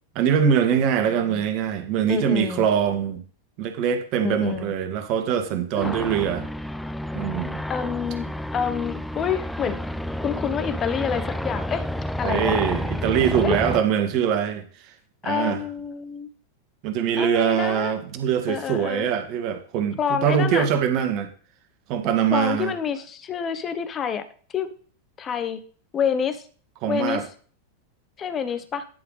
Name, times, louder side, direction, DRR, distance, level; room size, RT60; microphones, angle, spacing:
voice 1, 0.2-3.2 3.6-6.4 7.1-7.6 12.2-14.6 15.2-15.6 16.8-21.3 21.9-22.7 26.8-27.2, right 8 dB, 40° right, 6 dB, 1.8 m, -23 dB
voice 2, 1.0-1.4 2.1-2.7 4.2-4.7 5.8-6.0 7.7-8.3 8.5-9.8 10.2-11.9 12.2-12.6 13.4-13.6 15.2-16.3 17.2-17.9 18.5-19.1 20.0-20.7 22.3-24.3 24.5-24.7 25.2-25.6 25.9-26.5 26.9-27.3 28.2-28.8, left 7 dB, 25° left, 12 dB, 1.1 m, -27 dB
sound 1, 5.8-13.8, left 1 dB, 5° left, 0.4 m, -30 dB
10.5 x 5.9 x 4.1 m, 0.41 s
figure-of-eight pair, 90°, 0 cm